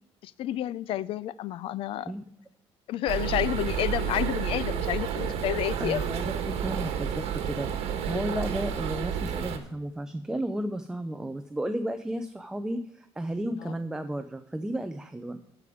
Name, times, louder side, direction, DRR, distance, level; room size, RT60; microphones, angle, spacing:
voice 1, 0.2-2.1 2.9-6.1 8.0-8.5 13.6-13.8, left 12 dB, 60° left, 0.4 m, -30 dB
sound 1, 3.1-9.6, right 8 dB, 70° right, 1.4 m, -30 dB
voice 2, 5.8-7.7 8.1-15.4, right 1 dB, 5° right, 0.4 m, -33 dB
13.5 x 5.1 x 4.9 m
cardioid pair, 165°, 10 cm